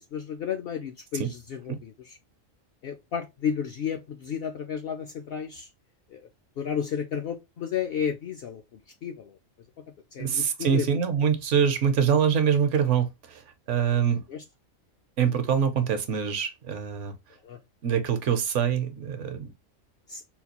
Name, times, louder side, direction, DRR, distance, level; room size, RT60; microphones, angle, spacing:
voice 1, 0.1-2.2 2.8-5.7 6.1-6.2 6.6-9.3 10.1-10.9 14.3-14.4 17.4-17.6 20.1-20.2, left 7 dB, 65° left, 0.6 m, -32 dB
voice 2, 10.2-13.4 13.7-14.2 15.2-17.1 17.8-19.5, right 7 dB, 65° right, 0.9 m, -24 dB
3.9 x 2.3 x 2.8 m
omnidirectional pair, 1.4 m